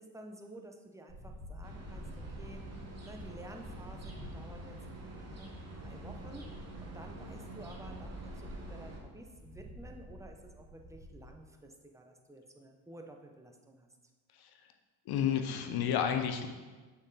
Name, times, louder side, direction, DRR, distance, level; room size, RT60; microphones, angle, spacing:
voice 1, 0.0-2.6 3.0-6.5 6.8-13.9, right 1 dB, 5° right, 3 dB, 0.8 m, -52 dB
sound 1, 1.1-11.3, equal, 25° left, 1.8 m, -50 dB
sound 2, 1.6-9.0, right 1 dB, 35° right, 1.4 m, -46 dB
voice 2, 15.1-16.5, left 8 dB, 60° left, 7 dB, 0.9 m, -31 dB
6.8 x 4.5 x 4.0 m, 1.3 s
supercardioid pair, 80°, 43 cm